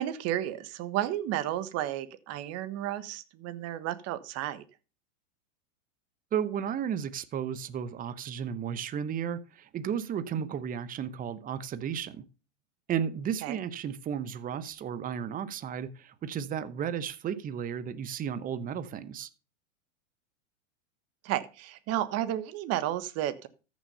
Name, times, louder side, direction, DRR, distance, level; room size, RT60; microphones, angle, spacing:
voice 1, 0.0-4.6 10.3-10.5 13.4-13.6 21.2-23.5, right 12 dB, 40° right, 13 dB, 1.4 m, -32 dB
voice 2, 6.3-12.2 12.9-19.3, right 8 dB, 20° right, 14 dB, 0.9 m, -33 dB
14.0 x 6.3 x 5.5 m, 0.34 s
hypercardioid pair, 110°, 38 cm